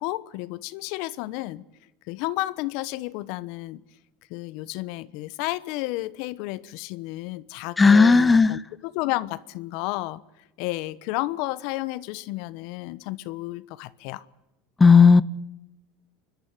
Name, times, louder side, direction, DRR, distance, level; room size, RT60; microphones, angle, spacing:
voice 1, 0.0-1.6 2.1-3.8 4.3-10.2 10.6-14.3, left 18 dB, 65° left, 1.0 m, -32 dB
voice 2, 7.8-8.6 14.8-15.2, left 4 dB, 15° left, 0.7 m, -14 dB
28.5 x 12.0 x 9.3 m
supercardioid pair, 105°, 0 cm